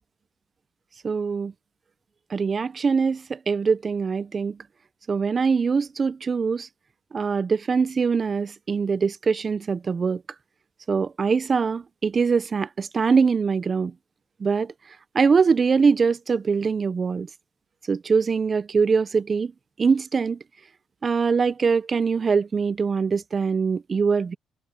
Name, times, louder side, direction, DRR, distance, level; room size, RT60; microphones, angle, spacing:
voice 1, 1.0-1.5 2.3-4.6 5.1-6.7 7.1-10.2 10.9-13.9 14.4-14.7 15.1-17.3 17.9-19.5 19.8-20.4 21.0-24.3, right 5 dB, 40° right, 0.5 m, -23 dB
cardioid pair, 90°, 0 cm